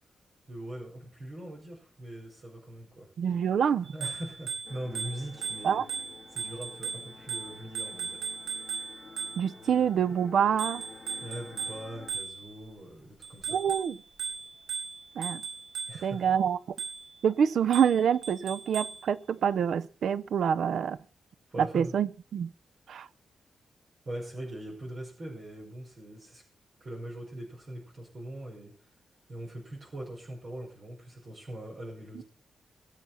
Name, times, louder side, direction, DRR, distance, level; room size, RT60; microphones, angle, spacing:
voice 1, 0.5-3.1 3.9-5.8 6.3-8.2 11.2-13.6 15.9-16.4 21.5-21.9 24.1-26.4 26.8-28.7 29.3-32.2, right 1 dB, 40° right, 5.6 m, -41 dB
voice 2, 3.2-3.9 5.6-5.9 9.4-10.8 13.5-14.0 15.2-15.4 16.0-16.8 17.2-21.0 21.6-22.5 22.9-23.1, right 8 dB, 75° right, 0.5 m, -26 dB
Bicycle bell, 3.9-9.7 10.6-12.7 13.2-16.2 16.8-17.2 17.7-19.1, right 5 dB, 90° right, 4.4 m, -38 dB
sound 1, 4.6-12.1, left 4 dB, 40° left, 4.6 m, -51 dB
20.5 x 7.6 x 5.7 m
wide cardioid pair, 150°, 0 cm